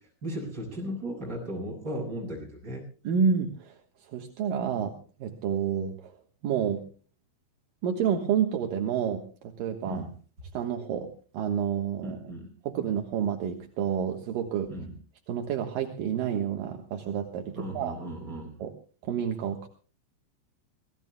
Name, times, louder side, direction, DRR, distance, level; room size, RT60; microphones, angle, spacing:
voice 1, 0.0-2.9 9.8-10.1 12.0-12.5 14.7-14.9 17.6-18.6, equal, 20° right, 0 dB, 7.7 m, -36 dB
voice 2, 3.0-6.1 6.4-6.8 7.8-10.1 10.5-12.2 12.6-14.7 15.3-18.0 18.6-18.7 19.0-19.7, right 7 dB, 65° right, 4 dB, 2.5 m, -29 dB
26.5 x 19.0 x 2.2 m, 0.38 s
omnidirectional pair, 5.3 m